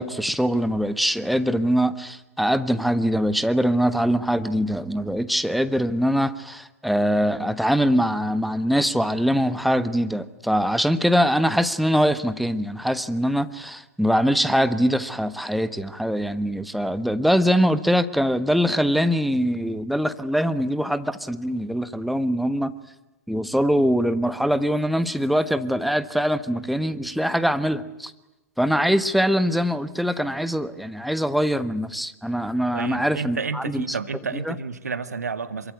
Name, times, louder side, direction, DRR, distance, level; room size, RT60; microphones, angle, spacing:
voice 1, 0.0-22.7 23.3-28.1 28.6-33.8 34.3-34.5, equal, ahead, 12 dB, 1.3 m, -23 dB
voice 2, 32.7-35.7, right 5 dB, 80° right, 10 dB, 1.9 m, -30 dB
26.0 x 23.5 x 9.6 m, 1.0 s
figure-of-eight pair, 105°, 9 cm